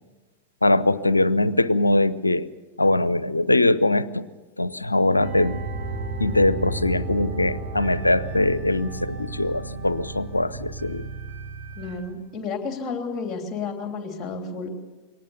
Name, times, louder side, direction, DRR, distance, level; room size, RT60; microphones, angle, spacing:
voice 1, 0.6-2.5 2.8-4.3 4.6-5.6 6.2-11.1, left 2 dB, 85° left, 18 dB, 0.5 m, -22 dB
sound 1, 5.2-12.0, right 3 dB, 60° right, 5.5 m, -33 dB
voice 2, 11.8-14.7, left 4 dB, 20° left, 4 dB, 3.0 m, -31 dB
22.5 x 18.5 x 6.9 m, 1.3 s
figure-of-eight pair, 90°, 0 cm